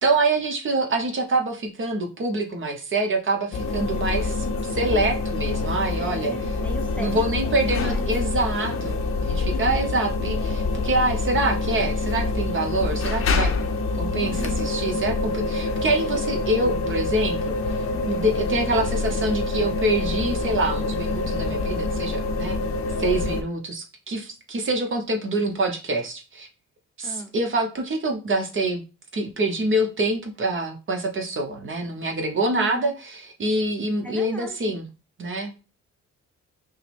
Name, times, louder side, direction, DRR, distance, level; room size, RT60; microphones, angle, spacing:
voice 1, 0.0-6.3 7.0-13.5 13.9-22.6 23.0-26.5 27.0-28.8 29.1-34.9 35.2-35.5, right 2 dB, 40° right, 4 dB, 0.9 m, -26 dB
sound 1, 3.5-23.4, left 3 dB, 45° left, 0.6 m, -26 dB
voice 2, 6.0-8.1 14.2-14.7 27.0-27.4 32.5-33.0 34.0-34.8, right 2 dB, 5° left, 3 dB, 0.7 m, -37 dB
5.6 x 2.1 x 3.4 m, 0.32 s
cardioid pair, 90°, 30 cm